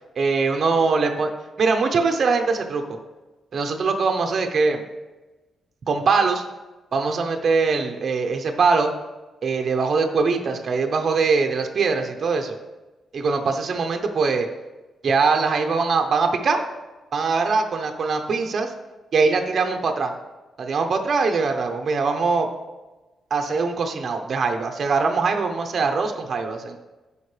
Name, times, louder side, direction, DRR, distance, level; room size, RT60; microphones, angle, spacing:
voice 1, 0.2-1.3 1.6-3.0 3.5-4.8 5.9-6.4 6.9-8.9 9.4-12.5 13.1-14.5 15.0-16.6 17.1-18.7 19.1-20.1 20.6-22.5 23.3-26.8, right 4 dB, 50° right, 4 dB, 0.9 m, -22 dB
14.5 x 5.1 x 3.4 m, 1.1 s
cardioid pair, 115°, 0 cm